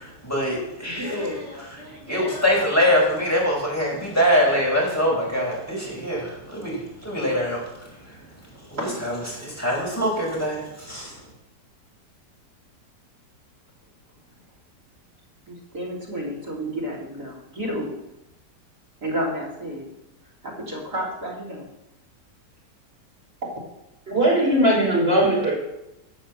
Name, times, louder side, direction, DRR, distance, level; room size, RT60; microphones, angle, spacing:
voice 1, 0.0-1.2 2.1-8.2 8.7-11.1, equal, 10° left, -4 dB, 5.3 m, -24 dB
voice 2, 0.8-2.7 8.8-9.0 15.5-17.9 19.0-19.9 20.4-21.7, equal, 60° right, 0 dB, 4.0 m, -31 dB
voice 3, 24.1-25.5, right 1 dB, 30° right, -4 dB, 4.9 m, -19 dB
12.0 x 7.3 x 7.6 m, 0.92 s
omnidirectional pair, 1.9 m